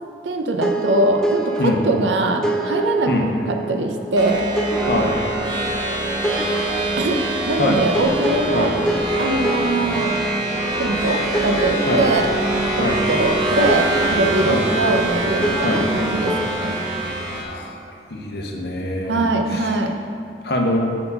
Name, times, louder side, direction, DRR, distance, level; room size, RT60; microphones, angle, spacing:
voice 1, 0.2-3.1 3.5-4.4 7.0-7.2 7.4-8.7 9.2-10.1 10.8-12.3 12.8-16.7 19.1-19.9, right 2 dB, 90° right, 3 dB, 0.7 m, -22 dB
sound 1, 0.6-17.0, right 2 dB, 5° left, 0.4 m, -27 dB
sound 2, 4.2-17.4, right 1 dB, 25° right, 0.8 m, -24 dB
voice 2, 17.4-17.8 18.1-19.8 20.4-20.8, left 1 dB, 60° left, 1 dB, 0.8 m, -23 dB
5.7 x 4.5 x 5.5 m, 2.3 s
head